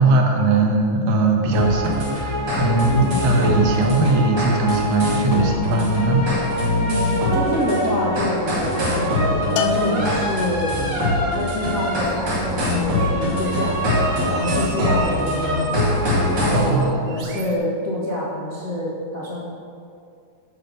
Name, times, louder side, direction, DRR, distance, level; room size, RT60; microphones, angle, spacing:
voice 1, 0.0-6.3 16.5-17.4, right 2 dB, 85° right, 1 dB, 3.2 m, -20 dB
sound 1, 1.5-16.7, left 1 dB, 35° right, 2.4 m, -22 dB
voice 2, 2.8-3.2 6.8-10.7 11.2-13.7 14.2-15.8 16.3-19.4, left 1 dB, 75° left, -7 dB, 0.7 m, -26 dB
Bell, 9.6-10.9, left 8 dB, 90° left, 2.6 m, -28 dB
sound 2, 12.0-17.6, right 2 dB, 60° right, 1.9 m, -38 dB
10.0 x 5.4 x 7.6 m, 2.4 s
omnidirectional pair, 4.4 m